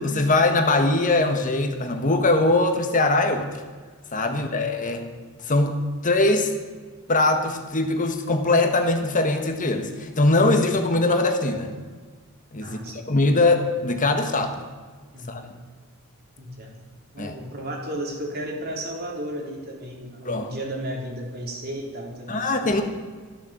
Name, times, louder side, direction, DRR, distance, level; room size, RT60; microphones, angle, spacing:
voice 1, 0.0-3.5 4.1-5.0 5.5-6.5 7.1-11.7 12.5-14.6 15.3-15.4 17.2-17.3 20.2-20.5 22.3-22.8, left 2 dB, 35° left, 5 dB, 1.5 m, -21 dB
voice 2, 12.6-13.4 15.1-15.5 16.4-16.8 17.1-22.5, right 1 dB, 45° right, 0 dB, 3.8 m, -34 dB
13.5 x 13.0 x 7.7 m, 1.5 s
head